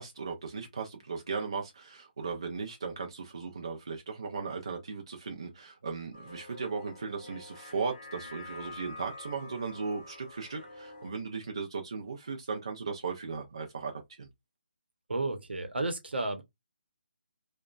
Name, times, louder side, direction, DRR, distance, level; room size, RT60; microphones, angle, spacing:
voice 1, 0.0-13.9 14.2-14.3, right 4 dB, 30° right, 0.3 m, -37 dB
sound 1, 6.1-11.1, left 2 dB, 20° left, 0.6 m, -47 dB
voice 2, 15.1-16.4, right 2 dB, 70° right, 0.8 m, -32 dB
2.8 x 2.1 x 2.4 m
hypercardioid pair, 180°, 6 cm